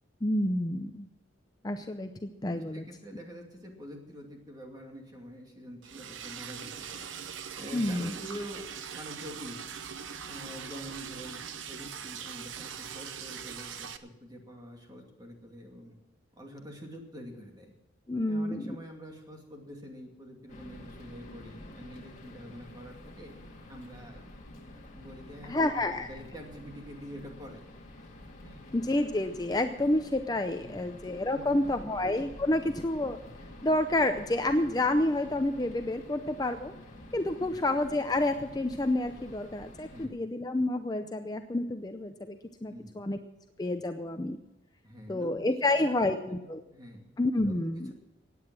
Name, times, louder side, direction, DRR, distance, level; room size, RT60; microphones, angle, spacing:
voice 1, 0.2-1.1 1.6-2.8 7.7-8.1 18.1-18.7 25.4-26.1 28.7-33.2 33.6-36.7 37.1-43.2 43.6-44.4 45.1-46.6 47.2-47.9, left 1 dB, 20° left, 7 dB, 0.5 m, -29 dB
voice 2, 2.5-9.7 10.2-16.0 16.4-17.7 18.3-23.4 23.7-24.3 24.7-27.6 28.4-28.6 30.6-30.9 31.3-32.0 32.5-32.9 37.4-37.6 39.9-40.2 42.7-43.0 44.8-47.1 47.4-47.9, equal, 20° right, 1 dB, 2.5 m, -46 dB
Liquid, 5.8-14.0, right 7 dB, 80° right, 0.9 m, -41 dB
sound 1, 20.5-40.1, left 1 dB, 40° left, 2.2 m, -49 dB
16.5 x 9.5 x 6.2 m, 0.99 s
head